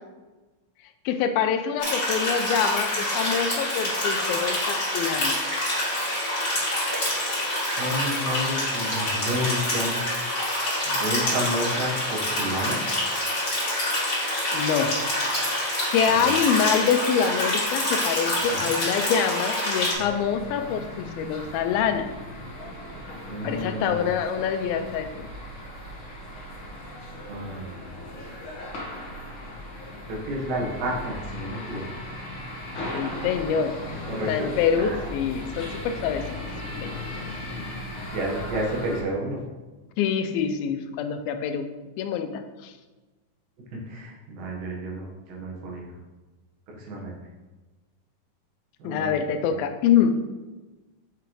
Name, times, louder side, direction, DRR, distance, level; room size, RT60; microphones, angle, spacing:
voice 1, 1.1-5.4 14.5-15.0 15.9-22.1 23.4-25.3 32.9-33.8 34.3-36.3 36.8-36.9 40.0-41.7 42.0-42.7 48.8-50.2, left 7 dB, 85° left, 8 dB, 2.4 m, -25 dB
sound 1, 1.8-19.9, left 1 dB, 30° left, 2.0 m, -26 dB
voice 2, 7.7-10.0 10.9-12.8 16.2-16.3 18.5-18.7 23.3-24.1 27.3-28.0 29.1-29.2 30.1-31.8 34.0-34.5 34.8-35.0 37.3-37.5 38.1-39.4 43.7-45.9 46.7-47.1 48.8-49.6, equal, 75° right, -2 dB, 3.1 m, -31 dB
sound 2, 20.0-39.0, left 1 dB, 60° left, 1.4 m, -37 dB
6.8 x 6.3 x 3.1 m, 1.2 s
omnidirectional pair, 4.2 m